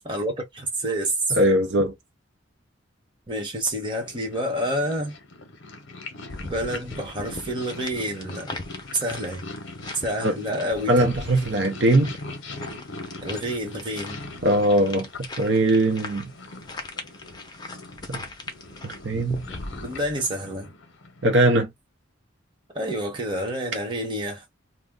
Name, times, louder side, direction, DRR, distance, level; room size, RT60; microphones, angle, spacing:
voice 1, 0.0-1.4 3.3-5.2 6.4-8.5 8.9-9.4 9.9-11.2 13.2-14.2 19.8-20.7 22.7-24.4, right 1 dB, 25° right, 1.0 m, -28 dB
voice 2, 1.3-1.9 10.2-10.3 10.9-12.1 14.4-16.3 18.1-18.2 18.8-19.5 21.2-21.7, right 1 dB, 60° right, 0.6 m, -21 dB
Purr, 3.8-21.5, left 2 dB, 65° left, 0.7 m, -41 dB
sound 1, 6.3-20.3, left 2 dB, 20° left, 0.6 m, -40 dB
2.3 x 2.1 x 3.6 m
head